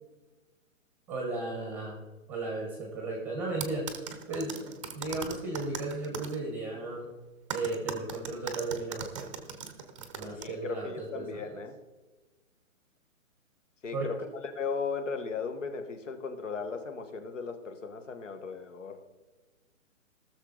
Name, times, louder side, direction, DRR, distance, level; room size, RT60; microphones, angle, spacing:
voice 1, 1.1-2.0 2.3-3.9 4.3-4.7 4.9-7.1 7.5-9.4 10.1-11.6 13.9-14.1, right 2 dB, 5° right, 1 dB, 1.0 m, -35 dB
sound 1, 3.6-6.4 7.5-10.4, right 7 dB, 25° right, 0.7 m, -38 dB
voice 2, 10.3-11.7 13.8-14.3 14.5-19.0, left 5 dB, 60° left, 7 dB, 1.7 m, -36 dB
18.5 x 6.7 x 4.0 m, 1.2 s
hypercardioid pair, 165°, 41 cm